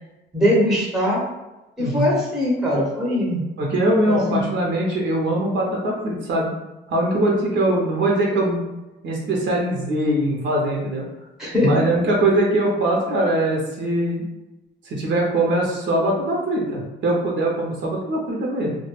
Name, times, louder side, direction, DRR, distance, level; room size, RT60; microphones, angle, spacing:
voice 1, 0.3-1.2 1.8-3.4 4.0-4.4 11.4-11.9, left 1 dB, 5° right, -4 dB, 0.7 m, -21 dB
voice 2, 1.8-2.1 3.6-6.5 6.9-8.6 9.0-11.0 11.6-14.2 14.9-18.8, right 1 dB, 65° right, -2 dB, 0.7 m, -22 dB
2.2 x 2.1 x 3.0 m, 1.0 s
cardioid pair, 90°, 20 cm